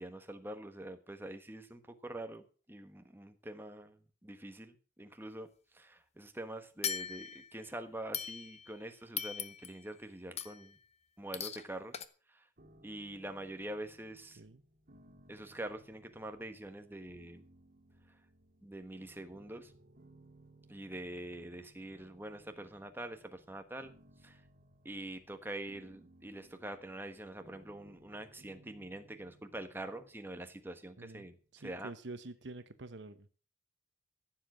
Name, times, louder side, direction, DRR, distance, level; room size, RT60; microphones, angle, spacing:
voice 1, 0.0-4.0 4.2-5.5 5.7-10.8 11.2-12.0 12.8-14.4 15.3-17.4 18.6-19.7 20.7-23.9 24.2-24.4 24.8-31.4 31.6-31.9, right 1 dB, 10° right, 1.3 m, -45 dB
sound 1, 6.8-7.6 8.1-8.8 9.2-9.8 10.4-10.7 11.3-11.7 11.9-12.0, left 8 dB, 35° left, 0.9 m, -39 dB
sound 2, 12.6-31.5, right 1 dB, 50° right, 1.8 m, -63 dB
voice 2, 31.0-33.3, right 2 dB, 80° right, 0.9 m, -48 dB
15.0 x 7.4 x 6.3 m
head